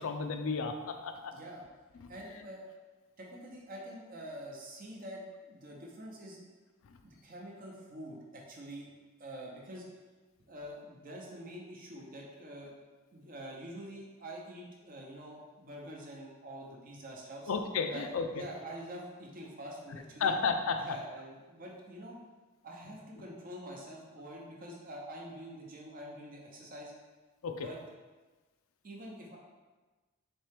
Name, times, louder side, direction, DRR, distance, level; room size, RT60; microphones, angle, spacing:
voice 1, 0.0-1.3 17.5-18.3 20.2-20.8 27.4-27.7, left 5 dB, 70° left, 6 dB, 0.4 m, -32 dB
voice 2, 1.3-1.6 2.1-2.6 3.2-6.5 7.0-8.9 9.2-9.9 10.5-12.7 13.1-17.5 17.9-20.3 20.8-22.2 22.6-26.9 27.5-27.8 28.8-29.4, equal, 40° right, -2 dB, 0.7 m, -46 dB
4.4 x 3.2 x 3.3 m, 1.3 s
head